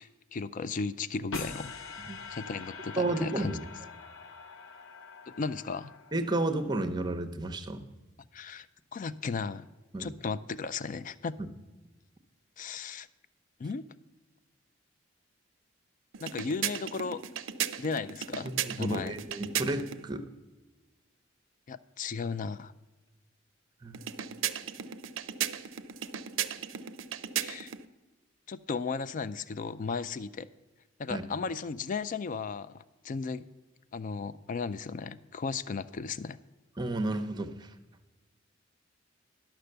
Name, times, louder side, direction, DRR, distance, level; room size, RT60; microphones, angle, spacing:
voice 1, 0.0-1.7 2.3-3.6 5.4-5.9 8.3-8.7 8.9-9.7 10.0-11.4 12.6-13.1 13.6-13.8 16.2-17.2 17.8-18.5 18.8-19.1 21.7-22.7 27.4-27.7 28.5-30.5 31.0-33.5 33.9-36.4, left 4 dB, 40° left, 15 dB, 0.4 m, -35 dB
sound 1, 1.3-6.5, left 5 dB, 85° left, 0.8 m, -43 dB
voice 2, 3.0-3.6 6.1-7.9 9.9-10.1 18.7-20.3 23.8-24.0 31.1-31.2 36.8-37.5, right 2 dB, 20° right, 8 dB, 0.7 m, -31 dB
sound 2, 16.1-20.0 23.9-27.8, right 10 dB, 80° right, 0.5 m, -36 dB
11.5 x 6.0 x 6.7 m, 1.2 s
head